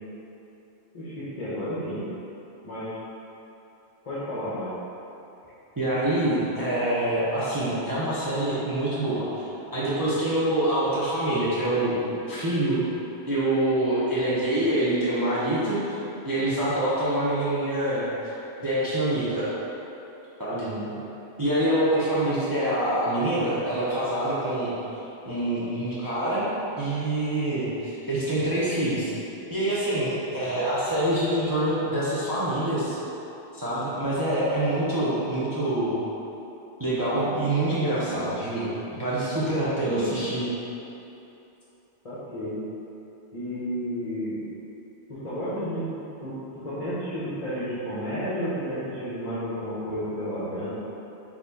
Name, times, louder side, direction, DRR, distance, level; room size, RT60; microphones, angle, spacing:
voice 1, 0.9-2.0 2.6-3.0 4.0-4.7 20.5-20.9 30.4-30.5 39.8-40.2 42.0-42.6 43.3-44.4 45.1-45.9 46.2-50.7, equal, 35° left, -12 dB, 0.9 m, -32 dB
voice 2, 5.8-9.3 9.7-12.8 13.3-16.0 16.2-18.3 18.6-19.5 20.4-20.7 21.4-24.7 25.2-26.5 26.8-29.1 29.5-33.0 33.5-36.0 36.8-40.5, right 1 dB, 25° right, -9 dB, 0.5 m, -25 dB
4.3 x 2.9 x 4.0 m, 3.0 s
omnidirectional pair, 1.1 m